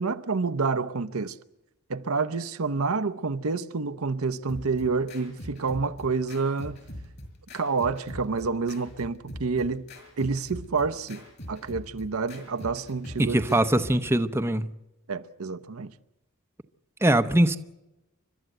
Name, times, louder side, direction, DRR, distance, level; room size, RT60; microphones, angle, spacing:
voice 1, 0.0-1.4 1.9-6.8 7.5-9.9 10.2-13.4 15.1-15.9, right 4 dB, 85° right, 0.8 m, -28 dB
sound 1, 4.5-14.1, equal, 50° left, 6.0 m, -42 dB
voice 2, 13.2-14.7 17.0-17.6, right 1 dB, 10° right, 0.7 m, -22 dB
30.0 x 12.5 x 7.9 m
head